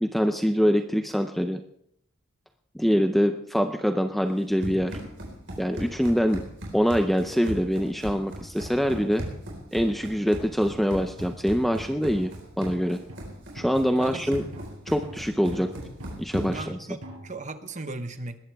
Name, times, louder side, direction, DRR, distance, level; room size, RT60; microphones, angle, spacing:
voice 1, 0.0-1.6 2.7-5.0 5.6-6.4 6.7-9.2 9.7-13.0 13.5-14.4 14.9-15.7 16.2-16.8, equal, ahead, 6 dB, 0.5 m, -24 dB
Run, 4.3-16.7, equal, 55° right, 4.5 m, -38 dB
sound 1, 8.8-9.8 10.7-17.3, equal, 80° right, 5.5 m, -46 dB
voice 2, 14.0-14.3 16.5-18.4, right 2 dB, 35° right, 9 dB, 1.0 m, -37 dB
20.0 x 14.5 x 3.5 m, 0.74 s
head